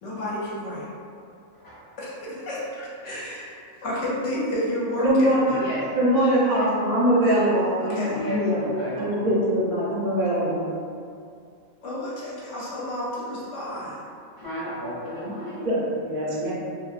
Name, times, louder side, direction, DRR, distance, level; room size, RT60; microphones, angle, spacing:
voice 1, 0.0-0.9 2.0-5.6 6.5-6.7 7.9-8.2 11.8-14.0, left 1 dB, 65° left, -6 dB, 0.9 m, -30 dB
voice 2, 1.5-1.8 5.4-5.9 8.1-9.3 14.4-15.6, equal, 25° left, -11 dB, 0.5 m, -32 dB
voice 3, 5.0-5.4 6.0-8.6 9.0-10.6 15.6-16.5, right 1 dB, 50° right, -7 dB, 0.4 m, -22 dB
2.7 x 2.4 x 2.4 m, 2.4 s
omnidirectional pair, 1.5 m